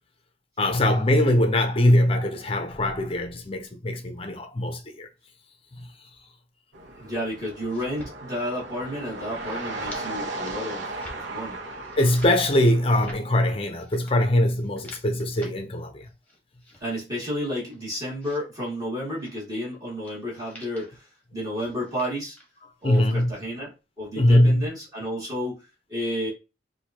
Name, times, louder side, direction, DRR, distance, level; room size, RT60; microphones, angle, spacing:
voice 1, 0.6-5.1 5.8-5.9 12.0-16.1 22.8-23.3 24.2-24.7, left 1 dB, 30° left, 0.7 m, -22 dB
sound 1, 6.7-13.1, right 2 dB, 80° right, 1.0 m, -36 dB
voice 2, 7.0-10.9 11.1-11.6 16.8-21.1 21.3-22.4 22.8-26.3, equal, 20° right, 2.3 m, -31 dB
sound 2, 7.5-8.1 8.5-8.9 9.2-10.0 10.3-10.6 10.9-11.2 11.6-12.3 12.8-13.2 13.8-14.1 14.6-15.5 16.0-16.8 17.4-18.4 19.1-19.4 20.0-20.2 20.4-20.9 21.5-22.5 22.8-23.2, left 1 dB, 10° left, 1.4 m, -47 dB
6.3 x 2.7 x 2.8 m
head